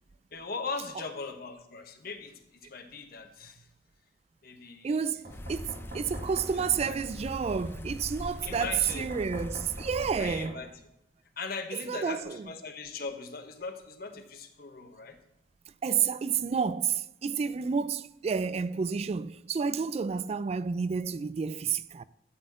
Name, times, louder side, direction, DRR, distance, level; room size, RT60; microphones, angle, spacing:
voice 1, 0.3-3.7 4.4-5.0 6.5-7.0 8.4-9.1 10.2-10.7 11.4-15.2, left 4 dB, 55° left, 1.2 m, -39 dB
voice 2, 4.8-10.5 11.9-12.5 15.8-22.0, right 6 dB, 35° right, 0.3 m, -30 dB
Knock, 5.2-7.0 8.9-10.6, right 1 dB, 55° right, 3.7 m, -44 dB
sound 1, 5.3-10.5, left 1 dB, 15° left, 0.6 m, -41 dB
12.5 x 4.2 x 7.6 m
head